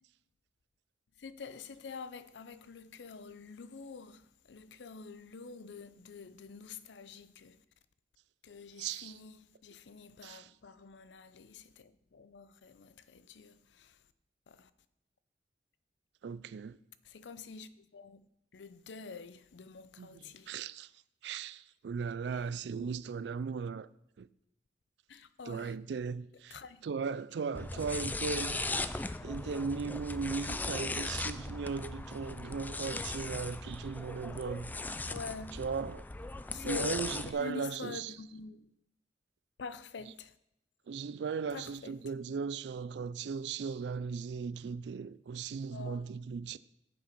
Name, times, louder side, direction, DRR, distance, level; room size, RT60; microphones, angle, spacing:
voice 1, 1.2-7.6 8.4-14.0 14.5-14.7 17.0-18.3 18.5-20.5 22.3-22.4 22.8-22.9 25.1-25.7 26.5-26.9 27.7-27.8 35.1-35.6 36.5-36.9 37.3-38.7 39.6-40.3 41.5-41.9 45.7-46.1, left 5 dB, 85° left, 0.5 m, -47 dB
voice 2, 8.8-9.2 10.2-10.5 16.2-16.8 20.0-20.9 21.2-23.9 24.2-24.3 25.5-26.6 26.8-28.6 29.2-35.0 35.5-36.1 36.6-38.2 40.9-46.6, right 5 dB, 75° right, 0.4 m, -37 dB
sound 1, 27.5-37.3, left 2 dB, 10° left, 0.3 m, -38 dB
8.1 x 7.6 x 5.2 m
head